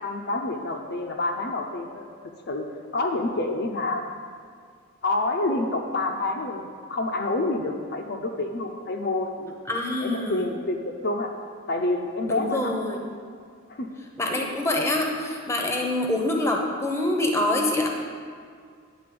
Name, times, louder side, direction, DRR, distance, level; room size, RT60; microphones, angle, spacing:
voice 1, 0.0-2.1 2.5-2.7 2.9-4.0 5.0-9.5 10.0-11.3 11.7-12.7 13.7-13.9, left 2 dB, 50° left, 2 dB, 0.5 m, -28 dB
voice 2, 9.7-10.4 12.3-13.0 14.2-18.0, left 1 dB, 10° left, 1 dB, 0.8 m, -25 dB
10.0 x 4.1 x 7.7 m, 2.1 s
head